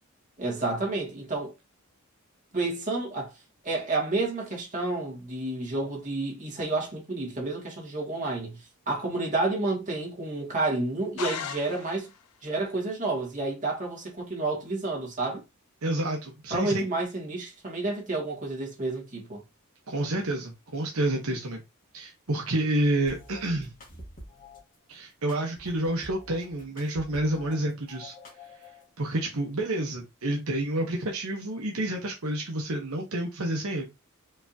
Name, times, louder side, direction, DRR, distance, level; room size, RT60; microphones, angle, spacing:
voice 1, 0.4-1.5 2.5-3.3 3.6-12.1 12.4-15.4 16.5-19.4, right 2 dB, 35° right, 2.3 m, -30 dB
sound 1, 11.2-12.3, left 8 dB, 85° left, 0.5 m, -36 dB
voice 2, 15.8-16.9 19.9-21.6 21.9-23.7 24.9-28.1 29.0-33.9, right 1 dB, 75° right, 1.1 m, -29 dB
sound 2, 23.1-24.6 25.3-27.6 27.9-28.9, left 1 dB, 40° left, 1.6 m, -47 dB
5.2 x 3.5 x 2.8 m
head